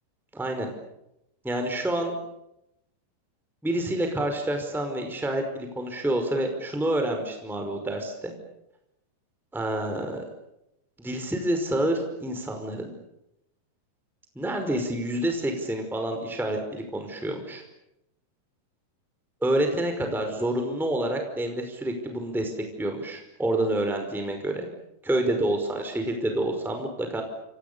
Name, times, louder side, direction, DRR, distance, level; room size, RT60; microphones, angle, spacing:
voice 1, 0.3-0.7 1.4-2.1 3.6-8.3 9.5-10.2 11.0-12.9 14.3-17.6 19.4-22.5 22.8-24.7 25.0-27.2, right 1 dB, ahead, 4 dB, 4.8 m, -28 dB
29.5 x 28.0 x 7.1 m, 0.85 s
omnidirectional pair, 4.9 m